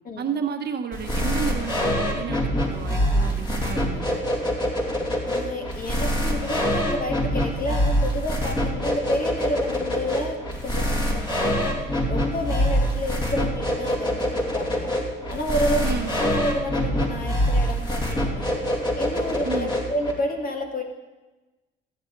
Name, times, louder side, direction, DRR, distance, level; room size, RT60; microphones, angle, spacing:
voice 1, 0.2-4.2 15.8-16.2 19.4-19.7, right 6 dB, 55° right, 5 dB, 1.2 m, -31 dB
sound 1, 0.9-20.1, equal, 20° left, 2.5 m, -25 dB
voice 2, 5.3-11.8 12.1-14.9 15.3-15.9 16.2-18.6 19.0-20.8, left 1 dB, 45° left, 2 dB, 2.0 m, -30 dB
14.5 x 8.8 x 4.6 m, 1.1 s
cardioid pair, 90°, 20 cm